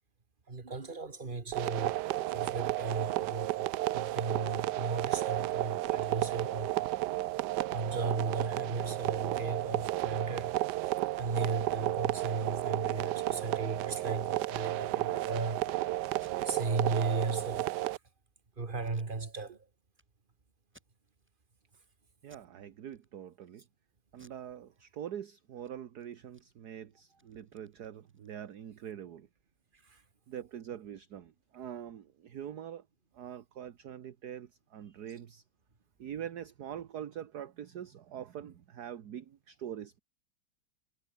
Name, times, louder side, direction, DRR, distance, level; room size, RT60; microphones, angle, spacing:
voice 1, 0.5-6.9 7.7-15.8 16.4-17.8 18.6-19.7 29.7-30.0, right 3 dB, 25° right, 2.0 m, -36 dB
sound 1, 1.5-18.0, right 16 dB, 75° right, 0.9 m, -33 dB
Packing tape duct tape, 16.1-16.3 16.8-16.9 17.2-17.3 17.7-18.1 18.8-19.6 19.9-20.0 20.6-21.3 21.7-21.9 22.2-22.5 22.9-23.5 24.1-25.2 25.5-25.7 26.0-28.6, equal, 5° right, 5.5 m, -65 dB
voice 2, 22.2-23.6 24.1-29.3 30.3-32.9 33.1-35.4 36.0-40.0, right 9 dB, 55° right, 1.5 m, -44 dB
omnidirectional pair, 2.3 m